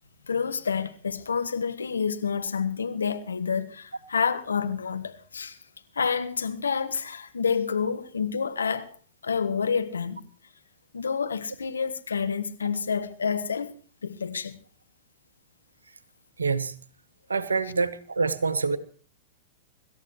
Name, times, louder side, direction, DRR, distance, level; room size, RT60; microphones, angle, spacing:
voice 1, 0.3-5.6 5.9-8.9 9.2-10.2 10.9-13.7 14.0-14.6, left 6 dB, 80° left, 1.3 m, -28 dB
voice 2, 16.4-16.8 17.3-18.8, right 4 dB, 85° right, 0.9 m, -26 dB
25.5 x 13.5 x 3.1 m
figure-of-eight pair, 100°, 0 cm